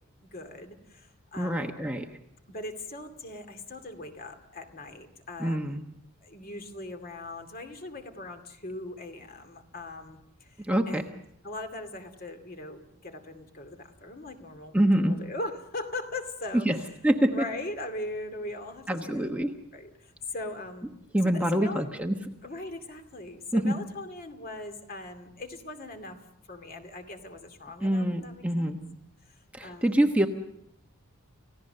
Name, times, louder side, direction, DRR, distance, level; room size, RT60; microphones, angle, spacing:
voice 1, 0.2-1.8 2.5-5.8 6.2-14.8 15.1-16.9 17.3-19.4 19.7-20.9 21.2-21.9 22.4-26.2 26.5-28.7 29.2-30.0, left 2 dB, 40° left, 6 dB, 2.4 m, -40 dB
voice 2, 1.4-2.1 5.4-5.8 10.7-11.0 14.7-15.2 16.7-16.8 17.0-17.3 18.9-19.5 21.1-22.1 23.5-23.7 27.8-28.8 29.5-30.3, right 1 dB, 5° right, 3 dB, 1.1 m, -25 dB
30.0 x 16.5 x 6.7 m, 0.76 s
head